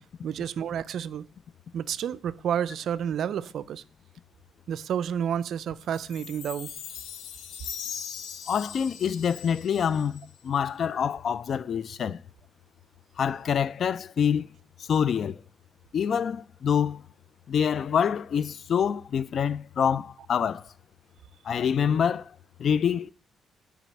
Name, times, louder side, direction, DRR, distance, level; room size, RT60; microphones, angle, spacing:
voice 1, 0.2-1.3 1.7-3.8 4.7-6.7, right 9 dB, 70° right, 0.4 m, -30 dB
Chime, 5.9-10.4, left 8 dB, 85° left, 0.9 m, -40 dB
voice 2, 8.5-12.2 13.2-14.5 14.8-15.4 15.9-17.0 17.5-20.7 21.4-22.3 22.6-23.1, left 7 dB, 55° left, 0.4 m, -26 dB
9.2 x 5.0 x 7.5 m
cardioid pair, 90°, 0 cm